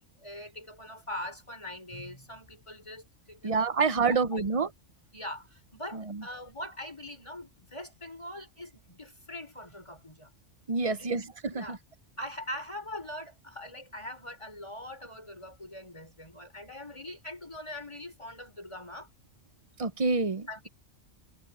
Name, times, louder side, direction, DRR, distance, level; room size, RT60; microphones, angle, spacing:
voice 1, 0.0-3.6 4.0-4.4 5.1-10.3 10.8-11.2 11.5-11.8 12.2-19.1 20.5-20.7, left 1 dB, 25° left, 6.1 m, -42 dB
voice 2, 3.4-4.7 10.7-11.6 19.8-20.7, right 4 dB, 30° right, 0.8 m, -27 dB
omnidirectional pair, 1.3 m